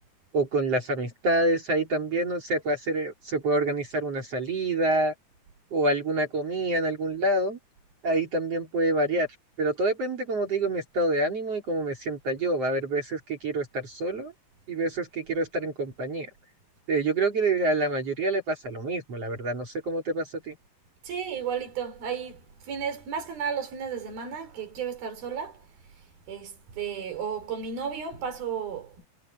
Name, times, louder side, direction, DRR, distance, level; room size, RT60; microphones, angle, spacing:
voice 1, 0.3-5.1 5.7-7.6 8.0-9.3 9.6-14.3 14.7-16.3 16.9-20.6, right 2 dB, 45° right, 4.2 m, -27 dB
voice 2, 21.0-25.6 26.3-29.1, right 7 dB, 80° right, 6.4 m, -33 dB
omnidirectional pair, 4.2 m